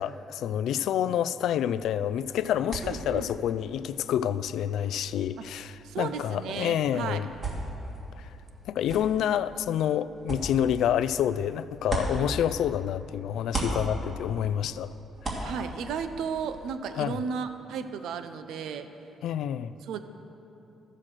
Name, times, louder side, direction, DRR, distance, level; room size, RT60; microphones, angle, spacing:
voice 1, 0.0-7.3 8.2-8.3 8.7-14.9 15.2-15.5 17.0-17.2 19.2-19.7, left 10 dB, 80° left, 15 dB, 0.3 m, -28 dB
sound 1, 1.8-13.0 13.3-16.7, right 2 dB, 40° right, 2.8 m, -38 dB
voice 2, 2.8-3.3 5.8-7.3 15.4-18.9 19.8-20.0, right 6 dB, 85° right, 9 dB, 0.7 m, -34 dB
13.5 x 7.5 x 6.5 m, 2.9 s
cardioid pair, 90°, 0 cm